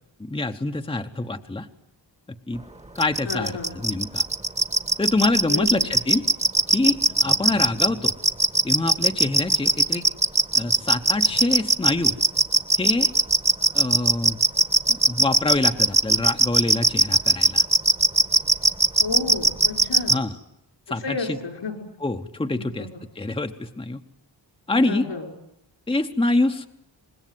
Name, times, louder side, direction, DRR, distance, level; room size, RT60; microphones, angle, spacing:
voice 1, 0.2-1.7 2.5-2.6 3.0-4.2 5.0-6.3 6.7-8.1 8.6-10.0 10.6-12.2 12.8-13.1 13.7-14.4 14.9-17.6 20.1-20.3 20.9-21.4 22.0-22.9 23.2-24.0 24.7-25.1 25.9-26.7, left 2 dB, 15° left, 6 dB, 1.0 m, -25 dB
sound 1, 3.0-20.1, right 2 dB, 15° right, 1.3 m, -18 dB
voice 2, 3.2-3.8 5.5-5.8 19.0-20.2 21.0-21.9 22.5-22.9 24.7-25.3, left 4 dB, 80° left, 4 dB, 5.7 m, -31 dB
25.0 x 21.0 x 9.3 m, 0.76 s
wide cardioid pair, 115°, 42 cm